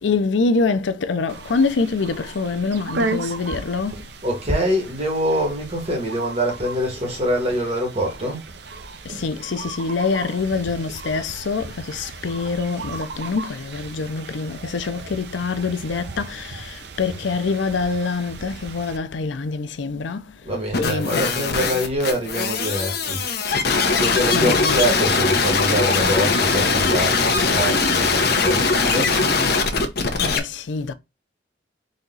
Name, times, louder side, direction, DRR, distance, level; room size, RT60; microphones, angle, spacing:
voice 1, 0.0-4.0 9.1-20.2 20.8-21.3 24.3-24.8 30.2-30.9, left 4 dB, 85° left, 0.5 m, -25 dB
sound 1, 1.3-19.0, right 3 dB, 65° right, 0.6 m, -35 dB
voice 2, 4.2-8.4 20.4-23.2 23.9-29.1, equal, 35° right, 1.8 m, -24 dB
sound 2, 20.7-30.4, left 4 dB, 60° left, 0.8 m, -20 dB
4.0 x 3.0 x 3.9 m
head